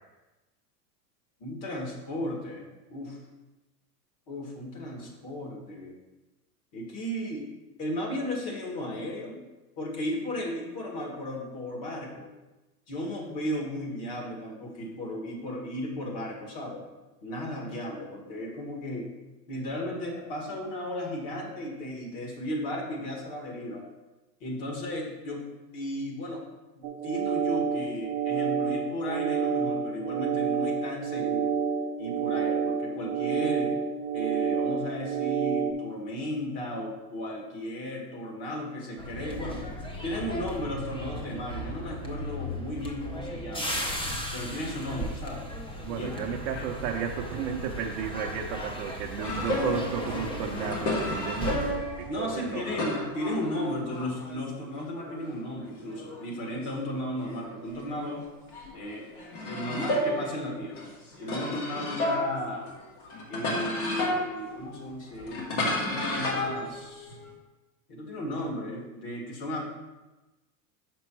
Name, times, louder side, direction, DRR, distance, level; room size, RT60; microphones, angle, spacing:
voice 1, 1.4-2.6 2.9-3.2 4.3-6.0 6.7-7.5 7.8-9.4 9.8-12.3 12.9-16.8 17.2-19.1 19.5-23.8 24.4-25.4 25.7-26.4 26.7-31.6 32.0-33.7 34.1-39.6 40.0-43.9 44.3-45.5 45.9-46.7 52.1-58.3 58.7-59.1 59.4-60.9 61.2-62.7 63.3-67.2 67.9-69.7, left 1 dB, 45° left, 0 dB, 2.0 m, -35 dB
sound 1, 26.8-35.7, right 7 dB, 65° right, 0.9 m, -29 dB
sound 2, 39.0-53.0 53.3-53.6, equal, 10° left, 0.7 m, -37 dB
voice 2, 45.9-52.7, right 7 dB, 45° right, -1 dB, 0.6 m, -33 dB
sound 3, 49.2-54.5 54.8-58.1 58.5-67.3, left 1 dB, 65° left, 2.1 m, -33 dB
6.1 x 5.3 x 4.6 m, 1.1 s
supercardioid pair, 135°, 49 cm